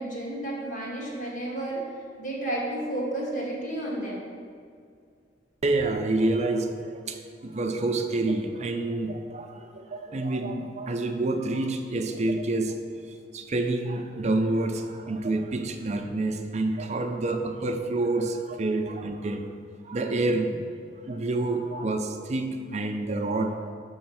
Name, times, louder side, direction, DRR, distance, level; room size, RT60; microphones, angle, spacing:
voice 1, 0.0-1.9 2.2-4.2 21.7-21.9, right 1 dB, 45° left, -4 dB, 1.6 m, -32 dB
voice 2, 5.6-12.8 13.3-19.4 19.8-23.7, right 2 dB, 40° right, 5 dB, 0.5 m, -28 dB
7.0 x 3.1 x 5.8 m, 2.2 s
head